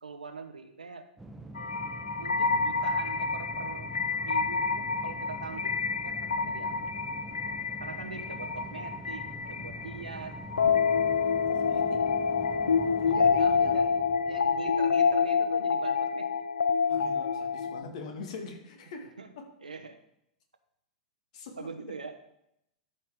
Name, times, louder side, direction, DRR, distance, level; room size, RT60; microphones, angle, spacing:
voice 1, 0.0-1.0 2.2-3.9 4.2-5.7 6.0-6.9 7.8-10.4 13.1-16.3 19.2-19.3 19.6-20.0 21.6-22.1, right 4 dB, 80° right, 8 dB, 0.9 m, -42 dB
sound 1, 1.2-15.6, right 1 dB, 5° right, 0.8 m, -45 dB
sound 2, 1.6-17.8, left 5 dB, 75° left, 0.4 m, -28 dB
voice 2, 11.5-12.0 13.0-13.8 16.9-19.5 21.3-21.7, left 4 dB, 55° left, 4 dB, 1.7 m, -44 dB
12.5 x 5.6 x 3.6 m, 0.77 s
figure-of-eight pair, 95°, 4 cm